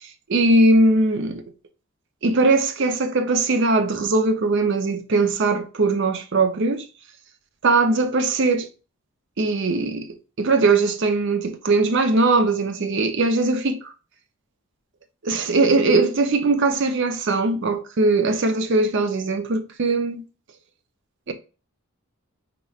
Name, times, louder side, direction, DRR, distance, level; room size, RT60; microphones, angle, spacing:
voice 1, 0.3-1.4 2.2-6.8 7.6-8.7 9.4-13.8 15.2-20.2 21.3-21.4, right 3 dB, 55° right, 0.6 m, -20 dB
5.2 x 3.0 x 2.4 m
head